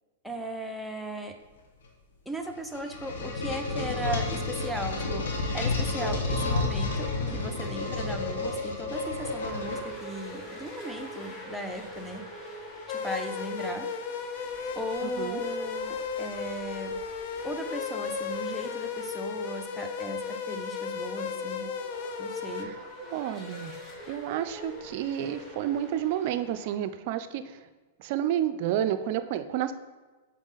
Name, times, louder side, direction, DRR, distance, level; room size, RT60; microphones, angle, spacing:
voice 1, 0.2-1.3 2.3-12.2 12.9-13.9 14.7-16.9 17.4-21.7 22.2-22.7, right 1 dB, ahead, 3 dB, 0.7 m, -37 dB
sound 1, 2.5-10.2, left 3 dB, 70° left, 1.1 m, -30 dB
sound 2, 9.2-26.8, equal, 30° left, 1.5 m, -45 dB
sound 3, 12.9-22.7, left 5 dB, 55° left, 0.5 m, -34 dB
voice 2, 15.0-15.4 22.6-23.7 24.1-27.6 28.0-29.7, right 11 dB, 55° right, 12 dB, 0.4 m, -30 dB
6.1 x 4.1 x 3.9 m, 1.3 s
hypercardioid pair, 110°, 0 cm